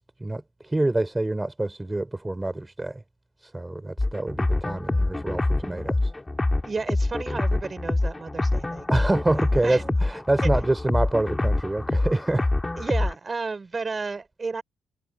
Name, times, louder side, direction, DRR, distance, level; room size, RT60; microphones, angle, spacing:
voice 1, 0.0-3.0 3.4-6.1 8.9-12.5, right 2 dB, 15° right, 4.4 m, -26 dB
sound 1, 4.0-13.1, left 2 dB, 15° left, 3.5 m, -25 dB
voice 2, 6.6-8.9 9.6-10.0 10.4-10.5 12.7-14.6, right 4 dB, 30° right, 5.8 m, -32 dB
cardioid pair, 90°, 0 cm